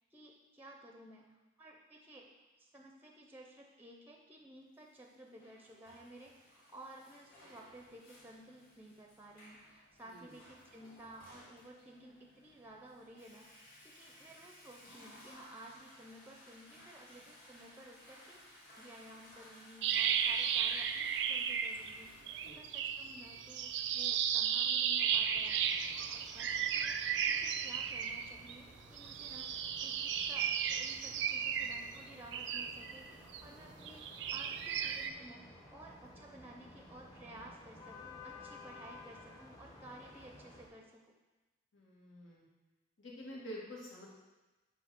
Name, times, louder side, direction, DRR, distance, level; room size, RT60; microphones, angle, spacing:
voice 1, 0.1-2.3 2.6-18.4 18.8-22.1 22.6-27.0 27.3-29.5 29.8-34.0 34.3-35.4 35.7-41.1, right 1 dB, 10° right, 1 dB, 0.5 m, -55 dB
Water / Toilet flush, 5.0-22.5, equal, 45° left, 2.3 m, -59 dB
voice 2, 10.0-10.4 22.4-22.6 41.7-42.5 43.0-44.1, equal, 80° left, -5 dB, 1.8 m, -48 dB
sound 1, 19.8-22.0 22.3-28.6 29.0-33.4 33.8-35.1, right 8 dB, 65° right, 0.4 m, -34 dB
sound 2, 25.0-40.7, left 2 dB, 20° left, 0.8 m, -55 dB
8.0 x 2.7 x 5.9 m, 1.2 s
head